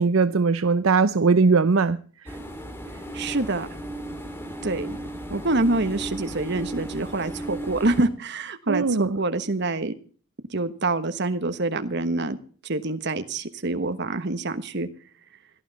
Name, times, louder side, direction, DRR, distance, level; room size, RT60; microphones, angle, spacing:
voice 1, 0.0-2.0 2.2-2.4 8.7-9.2, right 4 dB, 75° right, 0.7 m, -20 dB
sound 1, 2.3-8.1, right 1 dB, 10° left, 2.1 m, -35 dB
voice 2, 3.1-3.7 4.6-5.0 5.3-9.9 10.5-12.4 12.6-14.9, right 2 dB, 55° right, 1.3 m, -26 dB
17.5 x 12.0 x 4.1 m
head